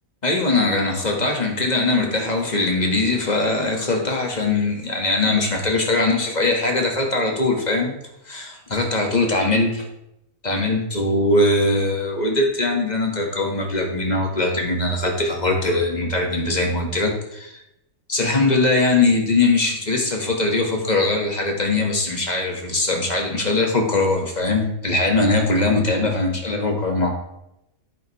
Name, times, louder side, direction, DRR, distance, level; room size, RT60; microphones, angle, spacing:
voice 1, 0.2-7.9 8.3-9.9 10.4-17.5 18.1-27.1, left 2 dB, 30° left, 1 dB, 1.8 m, -21 dB
10.5 x 9.1 x 3.2 m, 0.81 s
omnidirectional pair, 1.4 m